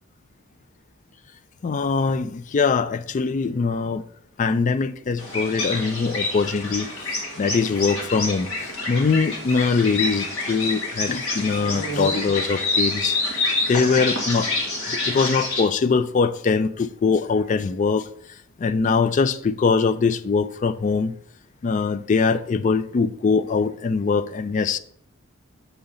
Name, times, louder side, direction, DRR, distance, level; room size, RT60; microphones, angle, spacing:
voice 1, 1.6-4.0 4.4-13.2 13.7-14.5 14.9-18.1 18.6-21.1 21.6-24.8, left 5 dB, 35° left, 0.3 m, -22 dB
sound 1, 5.2-15.6, left 2 dB, 70° left, 2.0 m, -27 dB
7.0 x 3.8 x 5.5 m
head